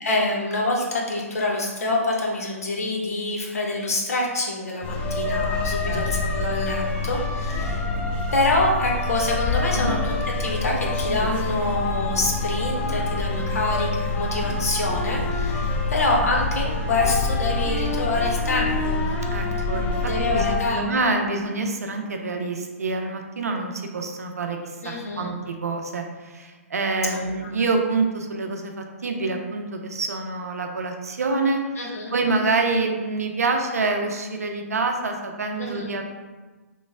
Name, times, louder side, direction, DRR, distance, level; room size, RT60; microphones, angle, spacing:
voice 1, 0.0-7.9 8.3-10.1 10.4-19.0 20.1-20.9 24.8-25.3 27.0-27.5 31.8-32.1 35.6-35.9, left 2 dB, 75° left, -1 dB, 0.8 m, -26 dB
sound 1, 4.8-20.6, left 2 dB, 15° left, 0.3 m, -26 dB
voice 2, 5.8-6.2 9.7-9.9 19.3-24.6 24.8-31.6 32.1-36.0, right 3 dB, 80° right, 3 dB, 0.5 m, -26 dB
3.0 x 2.0 x 3.4 m, 1.3 s
hypercardioid pair, 135°, 8 cm